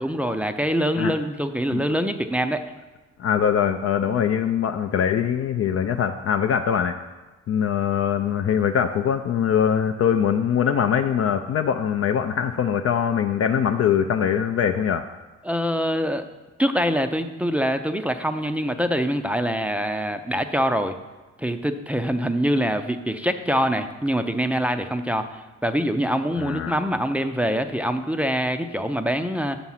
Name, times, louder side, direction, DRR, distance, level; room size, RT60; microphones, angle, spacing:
voice 1, 0.0-2.7 15.4-16.2 16.6-21.0 21.4-29.6, equal, 5° right, 7 dB, 0.4 m, -24 dB
voice 2, 3.2-7.0 7.5-15.0 26.4-26.8, left 8 dB, 50° left, 6 dB, 0.4 m, -22 dB
6.7 x 6.0 x 5.6 m, 1.2 s
cardioid pair, 90°, 30 cm